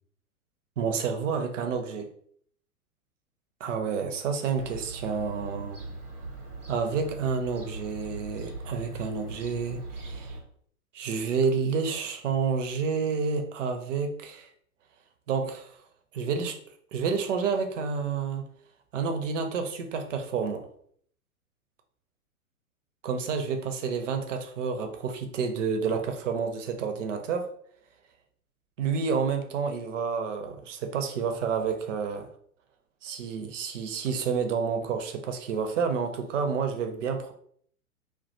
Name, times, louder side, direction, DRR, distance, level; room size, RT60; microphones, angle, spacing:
voice 1, 0.8-2.1 3.6-5.8 6.7-10.4 10.9-14.5 15.3-15.8 16.1-18.5 18.9-20.7 23.0-27.5 28.8-32.3 33.0-37.3, right 5 dB, 55° right, 6 dB, 0.5 m, -29 dB
Fowl / Gull seagull, 4.5-10.4, right 2 dB, 85° right, 0.8 m, -40 dB
2.2 x 2.2 x 2.6 m, 0.62 s
figure-of-eight pair, 105°, 44 cm